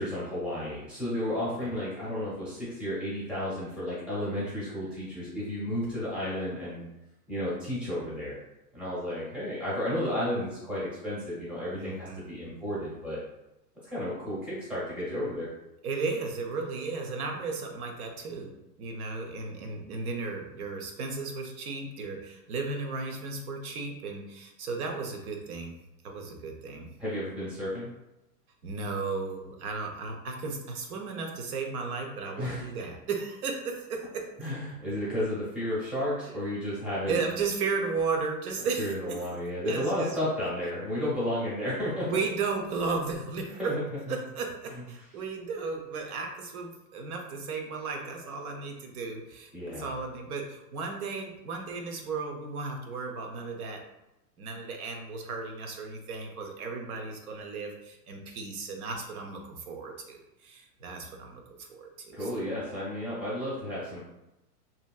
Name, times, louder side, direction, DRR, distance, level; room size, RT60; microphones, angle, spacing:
voice 1, 0.0-6.8 7.3-8.4 8.7-13.2 13.8-15.5 27.0-27.9 32.4-32.7 34.4-37.2 38.8-42.1 43.6-43.8 44.1-44.2 49.5-50.0 62.1-64.0, left 1 dB, ahead, -9 dB, 0.7 m, -32 dB
voice 2, 11.7-12.3 15.8-25.8 26.0-26.9 28.6-34.2 37.1-39.3 39.6-40.2 42.1-43.7 44.1-53.8 54.4-62.3, right 4 dB, 65° right, 2 dB, 0.8 m, -35 dB
2.9 x 2.7 x 2.3 m, 0.91 s
hypercardioid pair, 135°, 48 cm